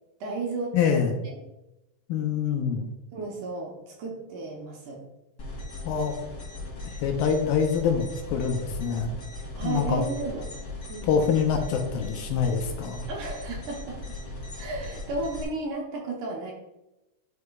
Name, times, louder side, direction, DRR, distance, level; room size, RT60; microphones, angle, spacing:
voice 1, 0.2-1.4 3.1-5.0 9.4-10.5 10.9-11.2 13.1-14.2 14.6-16.5, right 3 dB, 70° right, -2 dB, 2.2 m, -34 dB
voice 2, 0.7-1.1 2.1-2.9 5.8-6.2 7.0-9.1 9.6-10.0 11.1-13.0, left 6 dB, 80° left, 4 dB, 2.3 m, -25 dB
sound 1, 5.4-15.4, left 2 dB, 30° left, 2.4 m, -38 dB
10.5 x 4.8 x 2.3 m, 0.95 s
omnidirectional pair, 4.3 m